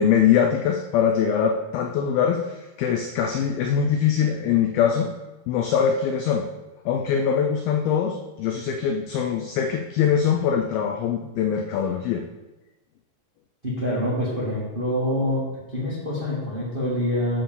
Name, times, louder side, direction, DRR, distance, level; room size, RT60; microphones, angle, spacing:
voice 1, 0.0-5.1 5.5-6.5 6.9-12.2, left 8 dB, 85° left, 4 dB, 2.1 m, -22 dB
voice 2, 13.6-15.4 15.7-17.4, left 1 dB, 40° right, -7 dB, 0.7 m, -25 dB
8.9 x 3.8 x 7.0 m, 1.1 s
omnidirectional pair, 5.0 m